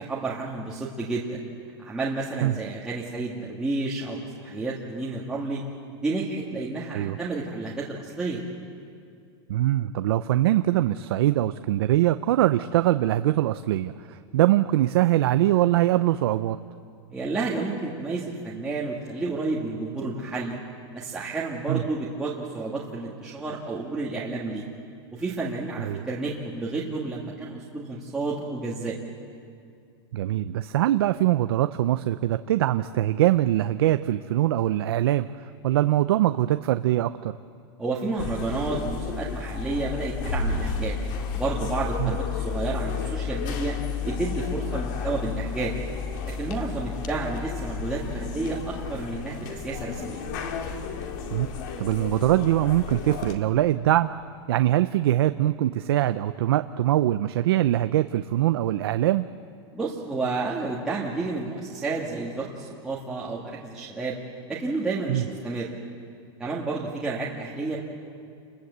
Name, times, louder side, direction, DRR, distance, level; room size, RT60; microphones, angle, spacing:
voice 1, 0.0-1.4 1.8-5.6 6.0-8.4 17.1-20.6 20.9-24.7 25.1-28.9 37.8-40.9 41.3-43.7 44.0-45.7 46.4-50.2 59.7-64.2 64.5-65.7 66.4-67.8, right 3 dB, 5° right, -6 dB, 1.6 m, -31 dB
voice 2, 9.5-16.6 21.7-21.8 25.8-26.1 30.1-35.3 35.6-37.3 42.0-42.1 51.3-51.5 51.8-54.1 54.5-59.3 65.1-65.3, right 14 dB, 65° right, 11 dB, 0.6 m, -23 dB
sound 1, 38.2-53.4, left 5 dB, 45° left, 2.1 m, -32 dB
29.0 x 21.0 x 8.1 m, 2.4 s
supercardioid pair, 180°, 14 cm